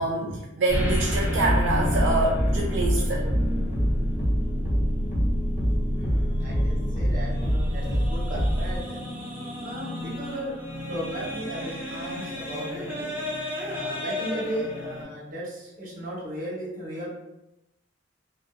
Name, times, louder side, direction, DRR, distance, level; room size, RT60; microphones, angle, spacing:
voice 1, 0.0-3.3, right 2 dB, 75° right, -1 dB, 0.3 m, -26 dB
sound 1, 0.7-15.0, left 1 dB, 10° right, 0.7 m, -32 dB
sound 2, 1.4-8.8, equal, 40° left, 0.7 m, -25 dB
voice 2, 5.7-9.1 9.6-10.6 10.9-13.2 13.7-17.1, right 1 dB, 45° right, -5 dB, 0.9 m, -36 dB
2.5 x 2.2 x 2.3 m, 0.93 s
head